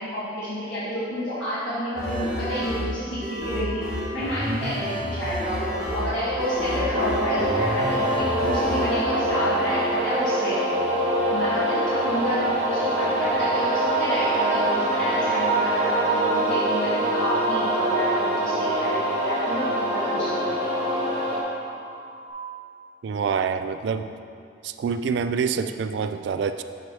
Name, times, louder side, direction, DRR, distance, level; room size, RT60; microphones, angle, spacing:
voice 1, 0.0-3.2 3.4-3.8 4.1-5.6 5.9-8.0 8.3-10.6 11.3-12.4 12.7-20.7, equal, 85° left, -11 dB, 1.5 m, -29 dB
sound 1, 2.0-8.9, equal, 5° right, 1.0 m, -30 dB
sound 2, 2.4-22.3, right 1 dB, 30° left, 0.6 m, -44 dB
sound 3, 5.5-21.4, right 1 dB, 35° right, 1.2 m, -24 dB
voice 2, 23.0-24.1 24.6-26.6, right 6 dB, 75° right, 10 dB, 0.3 m, -26 dB
6.7 x 4.5 x 4.7 m, 2.6 s
head